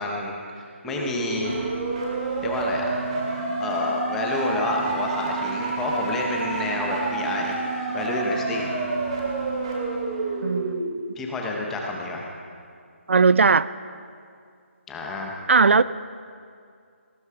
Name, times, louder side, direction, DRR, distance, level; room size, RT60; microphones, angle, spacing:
voice 1, 0.0-1.5 2.4-2.8 3.6-7.6 7.9-8.7 11.2-12.3 14.9-15.3, left 2 dB, 5° left, -1 dB, 0.7 m, -29 dB
sound 1, 0.8-10.8, right 3 dB, 25° right, 2.2 m, -28 dB
voice 2, 10.4-10.8 13.1-13.7 15.5-15.8, right 4 dB, 65° right, 17 dB, 0.4 m, -17 dB
18.5 x 11.5 x 4.8 m, 2.3 s
hypercardioid pair, 175°, 7 cm